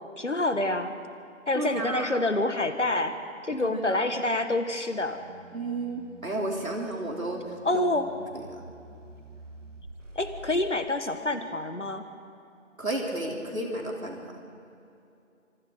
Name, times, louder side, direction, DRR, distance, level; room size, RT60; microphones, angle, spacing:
voice 1, 0.2-0.9 1.5-3.2 3.4-5.2 7.6-8.1 10.2-12.0, left 2 dB, 60° left, 8 dB, 1.9 m, -27 dB
voice 2, 1.6-2.1 3.6-4.0 5.5-7.4 7.7-7.9 12.8-14.3, right 2 dB, 80° right, 0 dB, 3.5 m, -32 dB
sound 1, 5.1-10.9, right 2 dB, 65° right, 2.6 m, -48 dB
26.5 x 26.5 x 3.9 m, 2.6 s
figure-of-eight pair, 170°, 40 cm